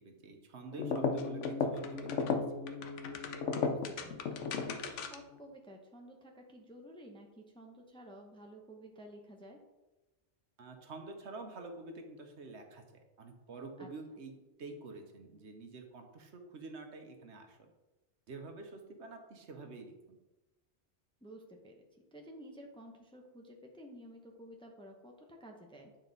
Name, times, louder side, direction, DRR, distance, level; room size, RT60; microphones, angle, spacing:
voice 1, 0.0-2.4 10.6-12.8 13.2-17.7 18.3-20.2, right 3 dB, 70° right, 4 dB, 1.2 m, -48 dB
sound 1, 0.7-5.4, left 5 dB, 90° left, 1.0 m, -35 dB
voice 2, 3.6-9.6 13.8-13.9 21.2-21.8 22.1-25.9, right 1 dB, 5° left, 1 dB, 0.7 m, -52 dB
9.0 x 4.4 x 4.0 m, 1.1 s
omnidirectional pair, 1.2 m